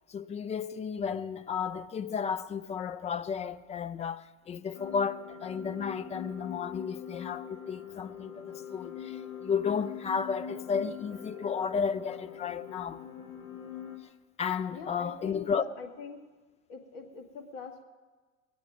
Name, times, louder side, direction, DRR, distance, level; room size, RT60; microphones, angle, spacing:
voice 1, 0.1-13.0 14.4-15.6, left 6 dB, 15° left, 0.4 m, -33 dB
sound 1, 4.7-14.0, left 8 dB, 80° left, 2.0 m, -42 dB
voice 2, 14.7-16.2 16.7-17.8, left 5 dB, 50° left, 2.0 m, -43 dB
22.0 x 8.5 x 5.1 m
hypercardioid pair, 90°, 40 cm